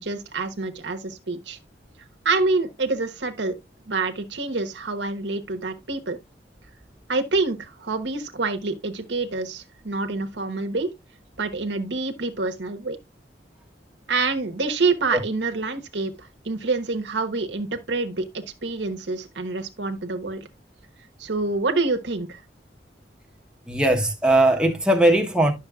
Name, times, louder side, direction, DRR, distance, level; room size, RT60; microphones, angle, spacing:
voice 1, 0.0-1.6 2.2-3.5 3.9-6.2 7.1-10.9 11.4-13.0 14.1-20.5 21.2-22.4, right 3 dB, 85° right, 1.1 m, -27 dB
voice 2, 23.7-25.5, right 1 dB, 5° right, 1.0 m, -19 dB
10.5 x 6.5 x 2.3 m
head